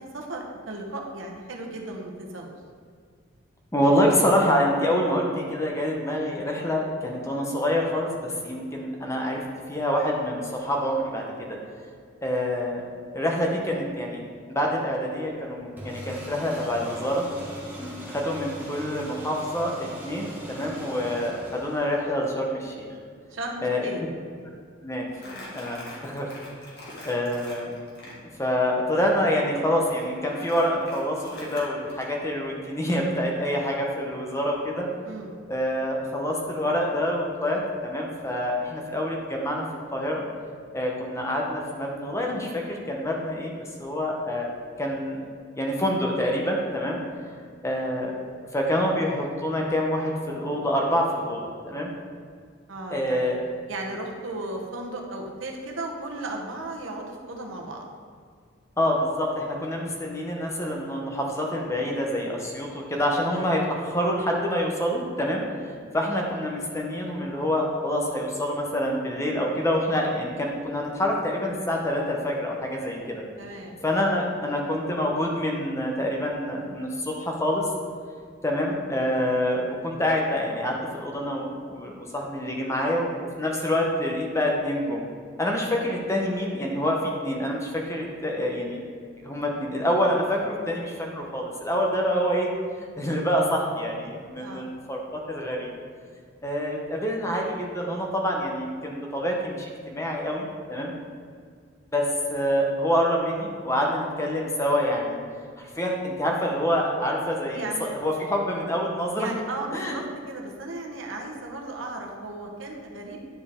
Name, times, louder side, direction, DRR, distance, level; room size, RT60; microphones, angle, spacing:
voice 1, 0.0-2.5 23.3-24.0 25.2-25.6 35.0-35.3 52.7-53.4 53.7-57.8 73.4-73.8 94.4-94.7 107.5-107.9 109.1-113.2, right 2 dB, 80° right, 1 dB, 1.0 m, -35 dB
voice 2, 3.7-9.4 9.7-11.2 12.2-12.8 13.1-14.2 14.5-17.2 17.8-22.9 23.6-23.9 24.8-25.1 25.5-26.3 27.0-27.7 28.4-34.9 35.5-39.6 39.9-40.2 40.7-43.5 43.8-44.5 44.8-45.2 45.6-47.0 47.6-48.1 48.5-51.9 52.9-53.4 58.8-73.2 73.8-77.6 78.4-85.0 85.4-88.8 89.2-92.5 93.0-95.7 96.4-100.9 101.9-105.2 105.6-109.3 109.7-110.0, equal, 15° left, 0 dB, 0.9 m, -26 dB
sound 1, 15.8-22.3, equal, 10° right, 1.1 m, -40 dB
Crumpling crinkling, 25.1-28.2 29.8-32.1, left 1 dB, 55° left, 1.8 m, -43 dB
10.0 x 4.7 x 3.6 m, 2.1 s
head